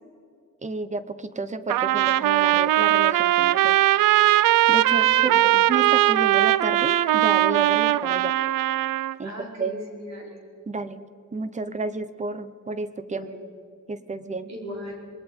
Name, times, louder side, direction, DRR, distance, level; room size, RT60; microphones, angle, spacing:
voice 1, 0.6-3.7 4.7-8.3 9.2-9.3 9.6-9.7 10.7-11.0 11.3-13.3 13.9-14.5, right 3 dB, 20° right, 13 dB, 0.8 m, -31 dB
Trumpet, 1.7-9.2, right 14 dB, 80° right, 0.5 m, -20 dB
voice 2, 5.2-5.5 9.2-10.4 13.2-13.5 14.5-15.0, left 1 dB, 55° right, -1 dB, 5.1 m, -38 dB
27.0 x 20.5 x 5.3 m, 2.4 s
wide cardioid pair, 180°, 33 cm